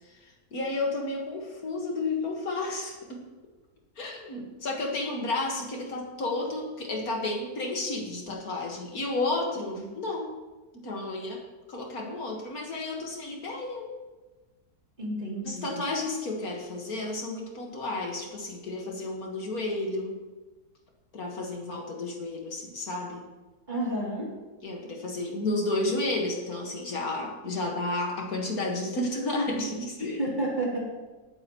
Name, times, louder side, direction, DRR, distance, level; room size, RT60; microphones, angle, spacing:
voice 1, 0.5-3.2 4.0-10.3 10.8-11.4 11.7-13.9 15.4-20.1 21.1-23.2 24.6-30.2, left 2 dB, 65° left, 0 dB, 2.1 m, -32 dB
voice 2, 15.0-15.8 23.7-24.3 30.2-30.8, right 1 dB, 30° right, -5 dB, 3.4 m, -31 dB
19.0 x 8.8 x 3.1 m, 1.2 s
omnidirectional pair, 1.7 m